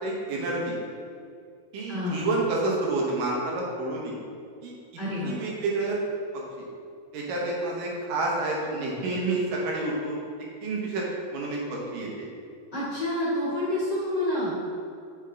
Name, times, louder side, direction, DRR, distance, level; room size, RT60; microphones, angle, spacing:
voice 1, 0.0-0.7 1.7-4.1 4.6-4.7 5.2-6.0 7.1-10.1 10.6-11.0 11.3-12.3, right 2 dB, 75° right, -3 dB, 2.7 m, -29 dB
voice 2, 1.9-2.4 5.0-5.4 12.7-14.6, left 1 dB, 40° left, -10 dB, 1.7 m, -28 dB
7.2 x 5.7 x 3.8 m, 2.4 s
omnidirectional pair, 4.0 m